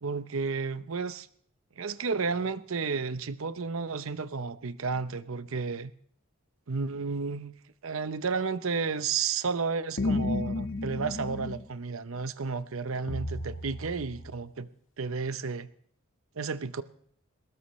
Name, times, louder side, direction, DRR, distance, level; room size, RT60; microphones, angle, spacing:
voice 1, 0.0-1.3 1.8-5.9 6.7-7.5 7.8-14.7 15.0-15.7 16.4-16.8, right 5 dB, 75° right, 0.8 m, -32 dB
sound 1, 10.0-11.6 13.1-14.4, left 2 dB, 65° left, 1.5 m, -32 dB
22.5 x 19.5 x 3.2 m
head